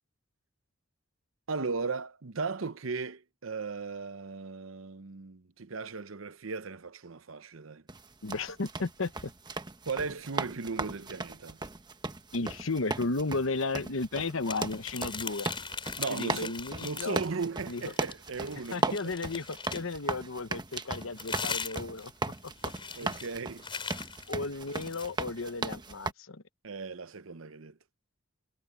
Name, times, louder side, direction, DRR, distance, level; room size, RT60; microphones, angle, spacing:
voice 1, 1.5-7.8 9.9-11.6 16.0-19.3 23.0-23.6 26.6-27.8, right 4 dB, 80° right, 0.9 m, -37 dB
sound 1, 7.9-26.1, right 3 dB, 20° right, 1.1 m, -37 dB
voice 2, 8.2-9.3 12.3-15.5 16.1-17.2 17.7-17.9 18.7-22.1 22.4-22.5 23.0-23.1 24.3-26.4, left 3 dB, 85° left, 1.1 m, -34 dB
sound 2, 14.4-17.3 17.7-20.0 20.7-25.1, left 5 dB, 25° left, 4.4 m, -40 dB
head